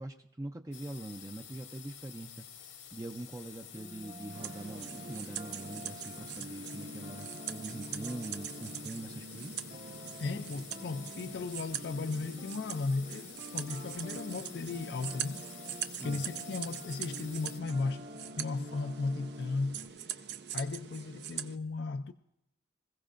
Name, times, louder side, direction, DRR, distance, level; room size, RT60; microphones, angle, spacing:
voice 1, 0.0-9.5 16.0-16.3, right 2 dB, 15° right, 0.5 m, -43 dB
sound 1, 0.7-17.6, left 9 dB, 90° left, 1.8 m, -50 dB
sound 2, 3.7-19.9, equal, 35° right, 1.3 m, -49 dB
sound 3, 4.3-21.6, right 9 dB, 60° right, 0.6 m, -43 dB
voice 2, 10.2-15.5 16.0-18.1 18.4-20.2 20.5-22.1, left 3 dB, 60° left, 0.4 m, -36 dB
26.0 x 15.5 x 2.5 m
head